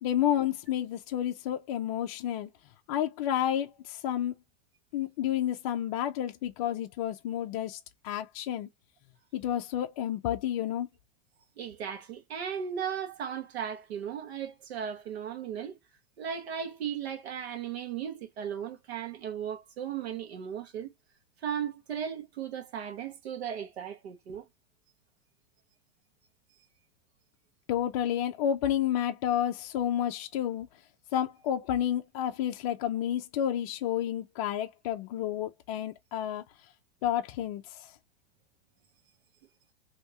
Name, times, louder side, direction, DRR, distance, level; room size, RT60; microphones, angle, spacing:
voice 1, 0.0-2.5 2.9-4.3 4.9-8.7 9.3-10.9 27.7-30.7 31.1-36.4 37.0-37.8, left 11 dB, 35° left, 0.4 m, -30 dB
voice 2, 11.6-15.8 16.2-20.9 21.4-24.4, right 8 dB, 90° right, 1.1 m, -36 dB
3.3 x 2.8 x 2.6 m
supercardioid pair, 160°, 31 cm